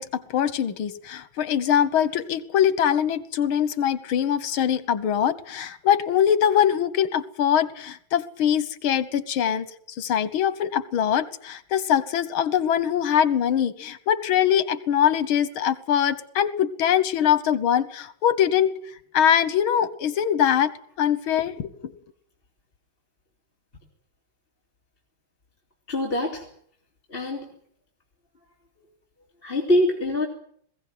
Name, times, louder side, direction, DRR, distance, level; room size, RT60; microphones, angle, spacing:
voice 1, 0.0-9.7 10.0-18.7 19.1-21.7, left 9 dB, 85° left, 15 dB, 2.0 m, -23 dB
voice 2, 25.9-26.5 27.1-27.5 29.4-30.3, left 1 dB, 25° left, 0 dB, 2.8 m, -24 dB
20.5 x 16.5 x 9.4 m, 0.64 s
omnidirectional pair, 2.2 m